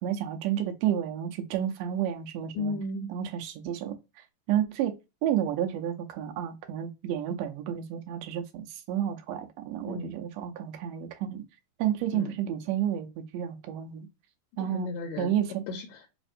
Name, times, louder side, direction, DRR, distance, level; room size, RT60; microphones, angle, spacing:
voice 1, 0.0-2.7 3.1-3.9 4.5-4.9 5.2-11.4 11.8-13.1 13.3-14.1 14.6-14.9 15.2-15.6, right 10 dB, 75° right, 1.8 m, -30 dB
voice 2, 2.5-3.1 9.9-10.1 12.1-12.4 14.6-15.3 15.7-16.1, left 2 dB, 80° left, 2.0 m, -34 dB
5.0 x 2.5 x 2.5 m
omnidirectional pair, 3.4 m